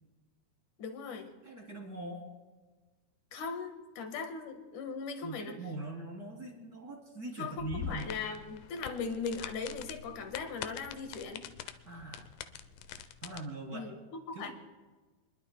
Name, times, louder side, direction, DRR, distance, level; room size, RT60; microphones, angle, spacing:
voice 1, 0.8-1.3 3.3-5.6 7.4-11.5 13.7-14.5, left 5 dB, 60° left, 5 dB, 2.6 m, -39 dB
voice 2, 1.4-2.2 5.2-8.1 11.8-12.3 13.2-13.9 14.4-14.5, right 2 dB, 25° right, 0 dB, 2.4 m, -42 dB
sound 1, 7.6-13.4, left 10 dB, 85° left, 1.9 m, -44 dB
28.5 x 22.0 x 2.2 m, 1.3 s
omnidirectional pair, 4.7 m